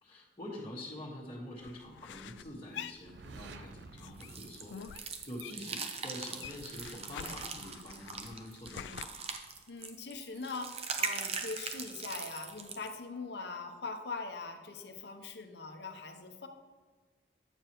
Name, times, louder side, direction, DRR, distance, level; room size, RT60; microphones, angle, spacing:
voice 1, 0.0-9.1, left 1 dB, 30° left, -10 dB, 1.5 m, -46 dB
sound 1, 1.6-3.7 4.0-5.8 6.1-9.0, left 8 dB, 90° left, 0.3 m, -47 dB
sound 2, 2.9-5.8, right 4 dB, 75° right, 0.5 m, -52 dB
sound 3, 4.2-12.9, right 5 dB, 35° right, 0.7 m, -41 dB
voice 2, 9.7-16.5, left 3 dB, 70° left, 6 dB, 0.8 m, -42 dB
8.8 x 6.8 x 3.0 m, 1.5 s
head